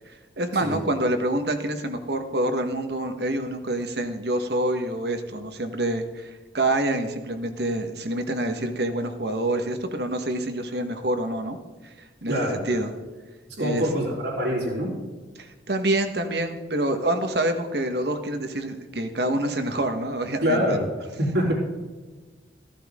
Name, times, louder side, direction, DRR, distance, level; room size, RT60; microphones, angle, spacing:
voice 1, 0.4-11.6 11.8-11.9 12.2-12.9 13.6-13.8 15.4-20.8, right 1 dB, 60° right, 7 dB, 1.4 m, -27 dB
voice 2, 12.3-12.8 13.6-14.9 20.4-20.8 21.2-21.5, equal, 85° right, -8 dB, 4.0 m, -25 dB
14.5 x 14.5 x 3.7 m, 1.3 s
head